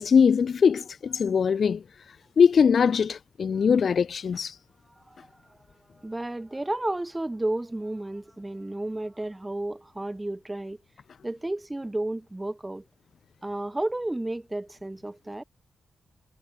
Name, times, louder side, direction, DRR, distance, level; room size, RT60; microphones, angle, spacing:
voice 1, 0.0-1.8 2.4-4.6, left 6 dB, 65° left, 0.4 m, -21 dB
voice 2, 5.0-5.6 5.9-10.8 11.2-12.8 13.4-15.4, right 1 dB, 20° right, 1.1 m, -32 dB
cardioid pair, 55°, 0 cm